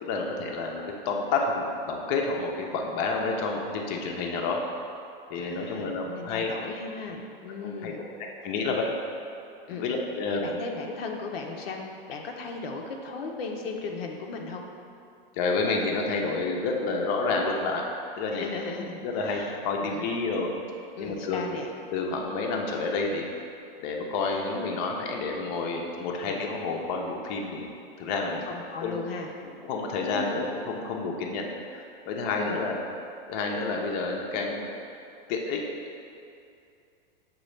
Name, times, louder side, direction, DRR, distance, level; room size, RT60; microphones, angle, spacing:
voice 1, 0.0-4.6 5.3-6.5 7.6-8.0 8.4-8.9 9.7-10.4 15.3-17.8 18.2-18.4 19.0-20.5 21.0-21.4 21.9-23.3 23.8-28.5 28.8-29.0 29.6-32.8 33.3-34.7 35.3-35.6, left 3 dB, 40° left, 0 dB, 0.5 m, -29 dB
voice 2, 5.3-8.0 9.7-10.0 10.3-11.8 12.1-14.6 18.3-20.1 21.0-21.7 26.2-26.4 28.4-29.3 29.9-30.5 32.4-32.7, left 4 dB, 80° left, 1 dB, 0.6 m, -37 dB
6.6 x 2.3 x 3.1 m, 2.5 s
hypercardioid pair, 125°, 29 cm